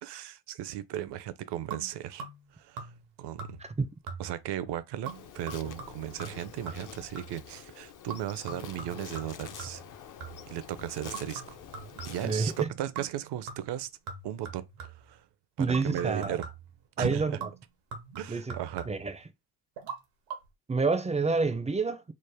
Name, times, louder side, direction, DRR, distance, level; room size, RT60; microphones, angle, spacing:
voice 1, 0.0-2.3 2.5-2.9 3.2-3.6 4.2-9.8 10.5-11.6 12.0-13.9 14.2-15.3 15.6-16.5 17.0-17.4 18.2-18.9, right 12 dB, 60° right, 0.6 m, -36 dB
sound 1, 1.7-2.5 2.8-3.1 3.4-3.8 4.1-4.5 5.1-7.5 8.1-10.6 11.1-12.4 13.0-13.2 13.5-15.1 15.7-16.8 17.4-19.2 19.8-20.0 20.3-20.4, right 5 dB, 90° right, 1.1 m, -43 dB
Insect, 5.0-12.6, left 8 dB, 45° left, 0.5 m, -47 dB
voice 2, 12.2-12.7 15.6-16.4 17.0-17.5 18.3-18.5 18.9-19.2 20.7-22.0, right 4 dB, 15° right, 0.5 m, -28 dB
3.3 x 2.1 x 3.3 m
supercardioid pair, 65°, 46 cm